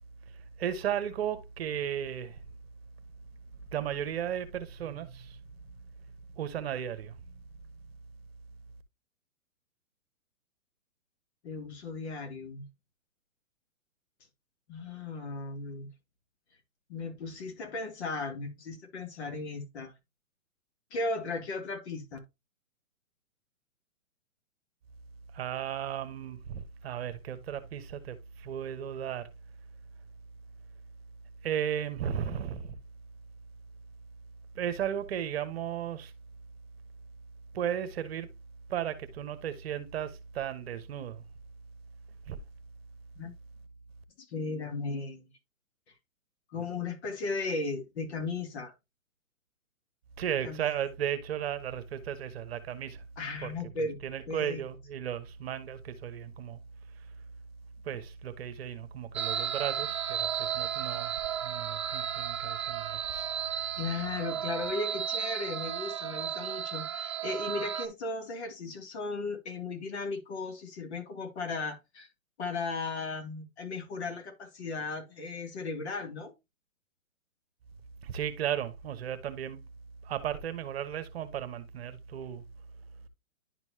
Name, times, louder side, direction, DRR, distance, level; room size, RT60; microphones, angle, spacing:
voice 1, 0.6-2.4 3.7-5.4 6.4-7.4 25.3-29.3 31.4-32.8 34.5-36.1 37.5-38.3 38.7-41.2 42.3-42.4 50.2-53.0 53.4-56.6 57.8-61.1 61.4-63.3 78.0-79.6 80.0-82.4, right 9 dB, 45° right, 1.2 m, -35 dB
voice 2, 11.4-12.7 14.7-15.9 16.9-19.9 20.9-22.2 43.2-43.3 44.2-45.3 46.5-48.7 50.4-50.6 53.2-54.0 54.3-54.6 63.8-72.1 72.4-76.3, left 3 dB, 50° left, 2.5 m, -36 dB
sound 1, 59.1-67.9, right 9 dB, 25° right, 0.4 m, -34 dB
11.0 x 4.5 x 2.8 m
hypercardioid pair, 145°, 41 cm